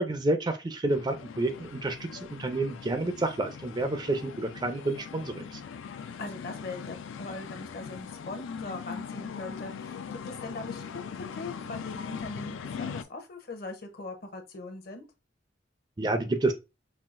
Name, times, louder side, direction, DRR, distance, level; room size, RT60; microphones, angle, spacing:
voice 1, 0.0-5.6 16.0-16.5, right 2 dB, 20° right, 0.4 m, -29 dB
sound 1, 0.9-13.0, left 6 dB, 80° left, 0.3 m, -40 dB
voice 2, 6.0-15.0, left 2 dB, 50° left, 0.8 m, -41 dB
5.5 x 2.3 x 2.4 m
head